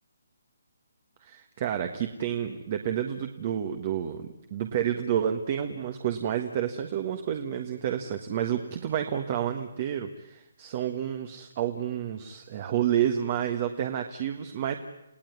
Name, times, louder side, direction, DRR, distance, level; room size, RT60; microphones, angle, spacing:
voice 1, 1.2-14.8, right 10 dB, 30° right, 7 dB, 1.5 m, -30 dB
29.5 x 17.5 x 9.6 m, 0.87 s
hypercardioid pair, 170°, 0 cm